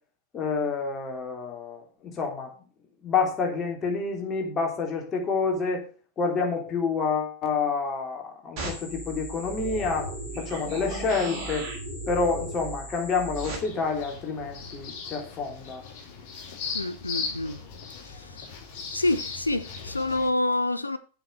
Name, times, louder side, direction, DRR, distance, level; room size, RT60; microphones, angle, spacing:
voice 1, 0.3-2.5 3.0-5.8 6.2-11.7 12.1-15.8, left 4 dB, 25° left, 3.3 m, -28 dB
sound 1, 8.6-13.6, right 2 dB, 40° right, 4.0 m, -36 dB
sound 2, 13.3-20.3, left 5 dB, 45° left, 3.6 m, -38 dB
voice 2, 16.7-17.6 18.0-18.4 18.9-21.0, left 2 dB, 85° left, 0.6 m, -27 dB
7.8 x 6.5 x 6.8 m
figure-of-eight pair, 90°, 0 cm